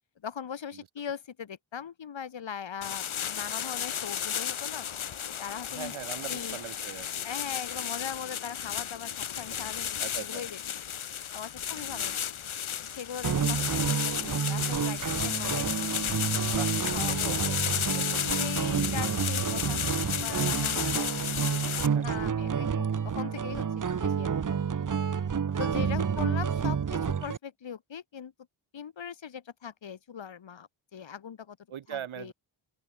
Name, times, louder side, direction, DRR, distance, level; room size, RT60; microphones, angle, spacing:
voice 1, 0.2-4.8 5.3-5.9 6.3-6.6 7.2-10.6 11.3-12.2 12.8-15.7 16.1-17.3 18.2-19.8 20.2-23.7 23.9-24.6 25.6-28.3 28.7-31.6 31.9-32.3, left 7 dB, 65° left, 1.4 m, -40 dB
sound 1, 2.8-21.9, left 9 dB, 85° left, 1.2 m, -33 dB
voice 2, 5.7-7.3 10.0-10.4 11.6-12.2 13.6-13.7 16.4-16.8 17.1-17.6 17.9-18.2 21.9-22.2 25.5-26.5 31.7-32.3, right 9 dB, 85° right, 1.1 m, -42 dB
sound 2, 13.2-27.4, right 7 dB, 40° right, 0.8 m, -29 dB
open air
cardioid pair, 55°, 48 cm